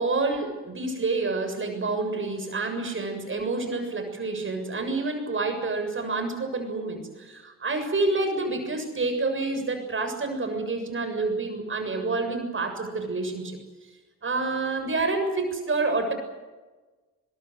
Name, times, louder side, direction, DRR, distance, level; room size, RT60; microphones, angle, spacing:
voice 1, 0.0-13.6 14.2-16.1, right 3 dB, 35° right, 7 dB, 7.1 m, -28 dB
23.0 x 22.0 x 8.1 m, 1.2 s
hypercardioid pair, 55°, 37 cm